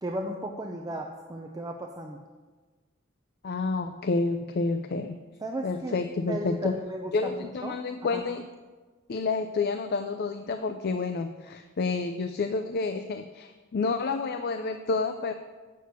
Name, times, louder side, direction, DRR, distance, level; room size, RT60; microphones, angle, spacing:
voice 1, 0.0-2.2 5.4-6.0 6.3-7.8 8.1-8.2, right 1 dB, 20° right, 2 dB, 0.6 m, -35 dB
voice 2, 3.4-5.2 5.6-6.8 7.1-8.4 9.1-15.3, left 3 dB, 50° left, 8 dB, 0.4 m, -29 dB
8.5 x 6.4 x 6.6 m, 1.3 s
head